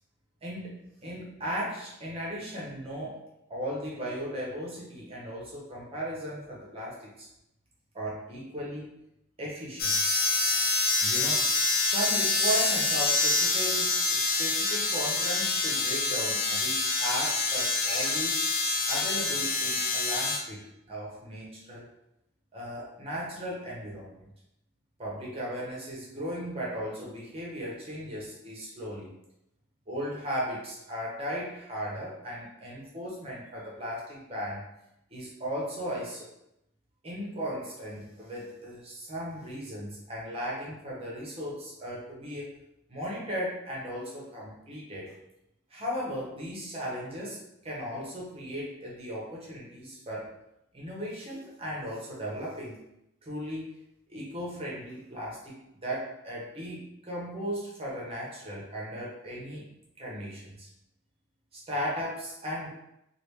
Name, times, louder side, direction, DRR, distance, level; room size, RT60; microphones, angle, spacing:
voice 1, 0.4-3.2 3.5-7.3 7.9-8.9 9.4-10.0 11.0-11.5 11.8-18.4 18.9-21.9 22.5-24.3 25.0-29.1 29.9-34.6 35.1-36.3 37.0-42.6 42.9-45.2 45.7-50.3 50.7-52.8 53.2-53.7 54.1-59.7 60.0-60.7 61.5-62.7, equal, 30° right, -5 dB, 0.8 m, -36 dB
sound 1, 9.8-20.4, left 3 dB, 45° left, 0.5 m, -26 dB
3.3 x 2.4 x 3.1 m, 0.84 s
head